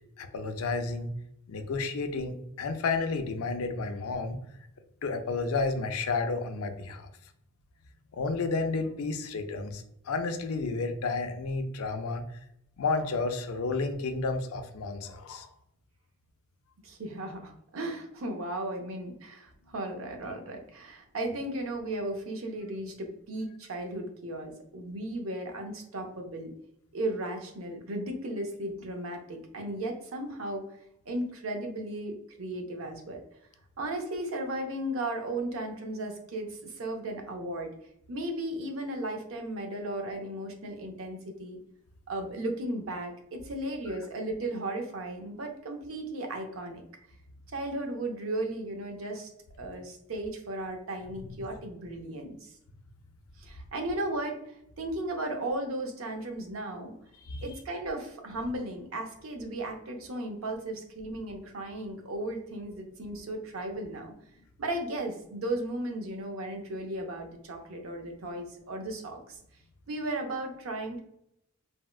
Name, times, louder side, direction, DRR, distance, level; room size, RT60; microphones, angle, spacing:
voice 1, 0.2-1.1 1.5-4.4 5.0-7.1 8.1-12.2 12.8-15.5 51.1-51.4 57.2-57.4, left 3 dB, 80° left, 7 dB, 0.4 m, -31 dB
voice 2, 16.8-26.5 26.9-30.6 31.1-33.2 33.8-37.7 38.1-41.6 42.1-46.8 47.5-49.3 49.6-52.5 53.4-56.9 57.4-64.1 64.6-69.4 69.9-71.0, right 1 dB, 65° right, 3 dB, 0.6 m, -35 dB
3.4 x 2.1 x 2.3 m, 0.77 s
head